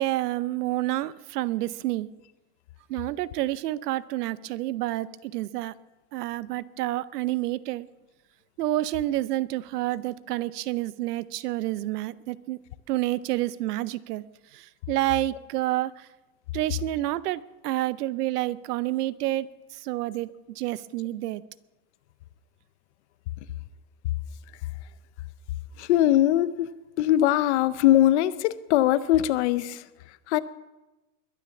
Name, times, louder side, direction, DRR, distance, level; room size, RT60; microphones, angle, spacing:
voice 1, 0.0-2.1 2.9-5.7 6.1-7.9 8.6-12.6 12.9-14.2 14.5-16.1 16.5-21.4, right 15 dB, 75° right, 18 dB, 0.8 m, -29 dB
voice 2, 25.8-26.7 27.0-30.4, left 13 dB, 45° left, 15 dB, 0.7 m, -22 dB
22.0 x 9.4 x 7.0 m, 1.1 s
supercardioid pair, 170°, 47 cm